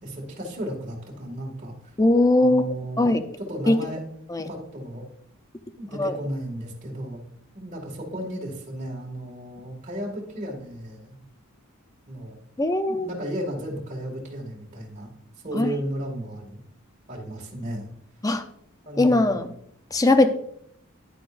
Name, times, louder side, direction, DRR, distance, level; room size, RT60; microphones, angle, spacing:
voice 1, 0.0-1.9 2.4-4.0 4.5-5.1 5.8-7.2 7.5-11.2 12.1-12.4 12.9-15.1 15.4-16.6 17.1-17.9 18.8-19.4, right 1 dB, 35° right, -2 dB, 2.2 m, -34 dB
voice 2, 2.0-2.6 3.0-3.2 3.7-3.8 4.3-4.5 6.0-6.1 12.6-13.1 15.5-15.7 18.2-18.4 19.0-19.5 19.9-20.3, left 2 dB, 15° left, 8 dB, 0.7 m, -20 dB
10.5 x 9.6 x 2.6 m, 0.69 s
head